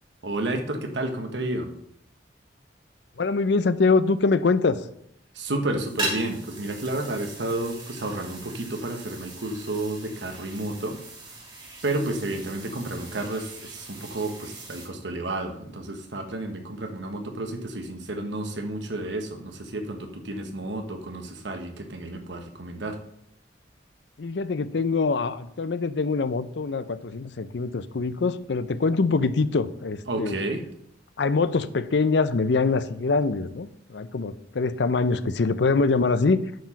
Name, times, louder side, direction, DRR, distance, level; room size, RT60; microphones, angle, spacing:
voice 1, 0.2-1.7 5.3-11.0 11.8-23.0 30.1-30.6, right 2 dB, 75° right, 6 dB, 1.2 m, -31 dB
voice 2, 3.2-4.9 24.2-30.4 31.2-36.4, left 4 dB, 65° left, 14 dB, 0.5 m, -24 dB
sound 1, 5.8-14.9, right 2 dB, 25° right, 1.8 m, -39 dB
9.2 x 4.8 x 5.7 m, 0.72 s
head